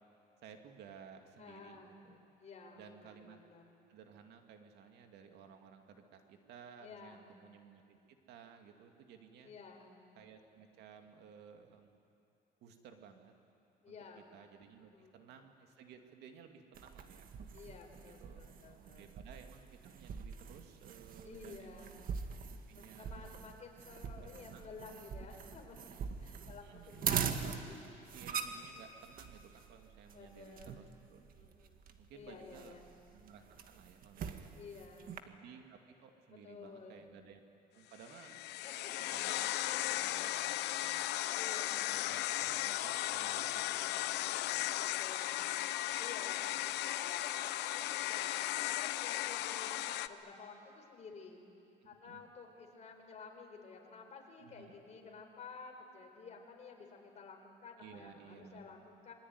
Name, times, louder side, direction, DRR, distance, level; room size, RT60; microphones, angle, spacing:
voice 1, 0.4-2.2 2.7-3.4 3.9-9.5 10.2-12.0 12.6-13.3 13.9-17.3 18.2-18.4 18.7-22.0 22.7-23.4 24.2-24.7 26.6-27.1 28.1-31.3 32.0-32.8 33.1-34.6 35.3-37.4 37.7-38.4 39.1-41.1 41.9-44.8 46.7-46.8 51.8-52.2 54.4-54.8 57.8-58.7, right 7 dB, 80° right, 5 dB, 2.4 m, -57 dB
voice 2, 1.4-1.9 2.4-3.7 6.8-7.2 9.4-9.9 11.0-11.1 13.8-14.2 14.8-15.2 17.5-19.2 21.2-21.9 22.7-25.9 26.2-28.0 30.1-30.9 31.3-31.8 32.1-32.9 34.5-35.2 36.3-37.0 38.6-39.1 41.3-41.9 44.8-46.5 46.8-51.4 51.8-59.1, left 4 dB, 40° left, 2 dB, 4.8 m, -53 dB
sound 1, 16.7-35.2, right 7 dB, 55° right, 1.8 m, -43 dB
sound 2, 38.0-50.1, left 15 dB, 80° left, 0.8 m, -36 dB
27.0 x 23.0 x 9.6 m, 2.7 s
cardioid pair, 110°, 17 cm